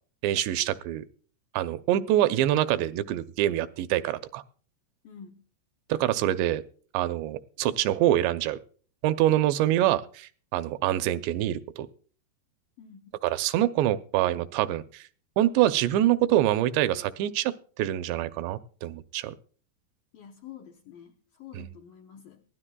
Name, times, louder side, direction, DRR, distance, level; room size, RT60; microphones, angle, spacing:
voice 1, 0.2-1.1 1.5-4.4 5.9-6.6 6.9-8.6 9.0-11.9 13.2-15.1 15.4-17.5 17.8-19.3 21.5-21.6, right 13 dB, 85° right, 12 dB, 2.9 m, -25 dB
voice 2, 5.0-5.4 12.8-13.2 20.1-22.4, left 8 dB, 75° left, 4 dB, 2.0 m, -48 dB
22.5 x 16.0 x 2.3 m, 0.43 s
omnidirectional pair, 4.9 m